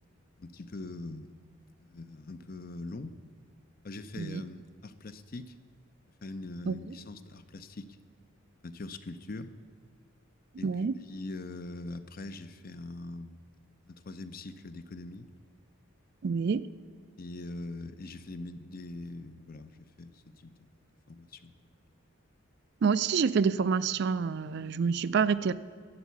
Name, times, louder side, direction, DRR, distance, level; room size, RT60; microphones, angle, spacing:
voice 1, 0.4-1.3 1.8-3.2 3.8-5.5 6.2-8.0 8.6-9.5 10.6-10.7 11.1-13.4 13.8-15.3 17.2-20.7 21.1-21.5, left 2 dB, 45° left, 11 dB, 0.6 m, -42 dB
voice 2, 10.6-11.0 16.2-16.6 22.8-25.5, right 5 dB, 55° right, 15 dB, 0.4 m, -27 dB
12.0 x 8.1 x 8.3 m, 2.1 s
head